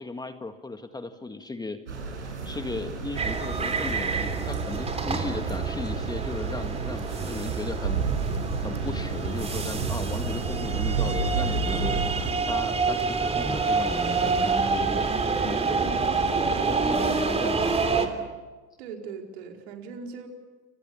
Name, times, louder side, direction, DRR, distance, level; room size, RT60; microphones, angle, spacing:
voice 1, 0.0-1.8 2.5-8.2 8.6-16.2 16.4-17.9, left 3 dB, 10° left, 7 dB, 1.9 m, -36 dB
sound 1, 1.9-12.3, right 4 dB, 85° right, 7.6 m, -31 dB
sound 2, 3.2-18.1, right 4 dB, 20° right, 3.4 m, -27 dB
voice 2, 11.2-11.9 16.4-17.1 18.8-20.3, right 5 dB, 65° right, 2 dB, 4.9 m, -40 dB
29.5 x 26.5 x 7.2 m, 1.3 s
hypercardioid pair, 85°, 35 cm